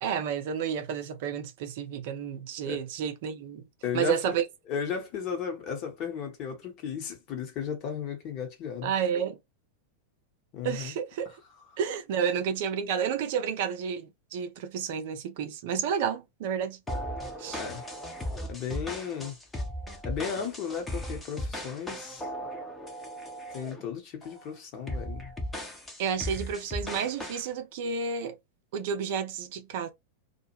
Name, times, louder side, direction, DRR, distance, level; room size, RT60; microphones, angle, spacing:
voice 1, 0.0-3.7 3.9-4.4 8.8-9.4 10.6-11.3 11.8-16.8 17.4-17.6 26.0-28.3 28.7-29.9, right 7 dB, 50° right, 0.5 m, -31 dB
voice 2, 3.8-4.4 4.7-8.9 10.5-10.9 17.5-17.8 18.5-19.4 20.0-22.3 23.5-25.3, left 7 dB, 40° left, 0.9 m, -35 dB
sound 1, 16.9-23.8 24.2-24.5 24.9-27.5, equal, 10° left, 0.7 m, -37 dB
2.2 x 2.1 x 2.9 m
figure-of-eight pair, 90°, 0 cm